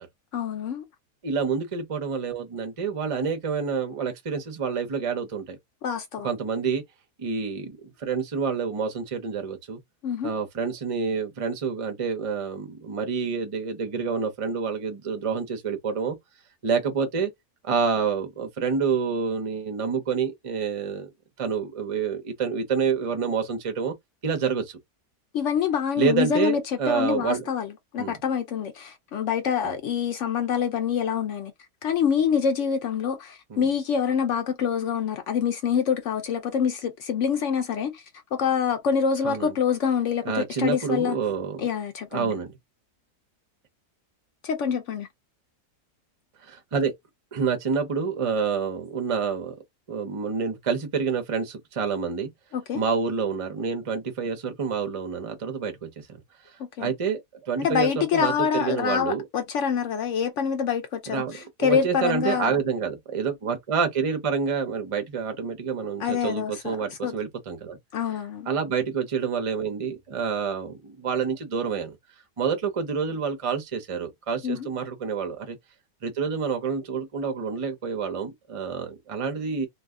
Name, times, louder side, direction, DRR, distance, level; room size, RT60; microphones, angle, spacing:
voice 1, 0.3-0.8 5.8-6.3 10.0-10.3 25.3-31.5 31.8-38.0 38.3-41.2 41.6-42.3 44.4-45.1 52.5-52.8 56.6-56.9 57.6-62.6 66.0-66.8 67.0-67.1 67.9-68.5 74.4-74.7, left 7 dB, 70° left, 0.7 m, -26 dB
voice 2, 1.2-5.6 6.2-6.8 7.2-9.8 10.2-16.2 16.6-17.3 17.6-21.1 21.4-23.9 24.2-24.7 26.0-27.4 28.0-28.2 29.6-29.7 33.5-33.6 39.2-39.5 40.2-41.6 42.1-42.6 46.4-46.9 47.3-49.5 49.9-52.3 52.7-56.2 56.8-59.2 61.1-67.8 68.5-72.0 72.4-75.6 76.0-79.7, right 6 dB, 45° right, 0.4 m, -28 dB
2.6 x 2.3 x 3.5 m
omnidirectional pair, 1.7 m